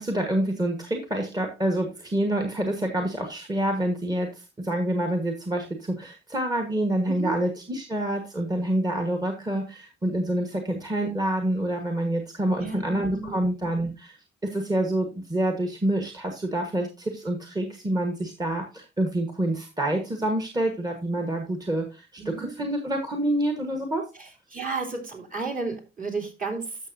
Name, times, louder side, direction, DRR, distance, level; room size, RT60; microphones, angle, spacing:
voice 1, 0.0-14.2 14.4-24.0, right 1 dB, 20° right, 4 dB, 1.3 m, -27 dB
voice 2, 7.1-7.4 12.6-13.5 22.2-22.5 24.2-26.8, right 4 dB, 45° right, 0 dB, 3.1 m, -33 dB
13.0 x 6.1 x 2.7 m, 0.28 s
cardioid pair, 90°, 20 cm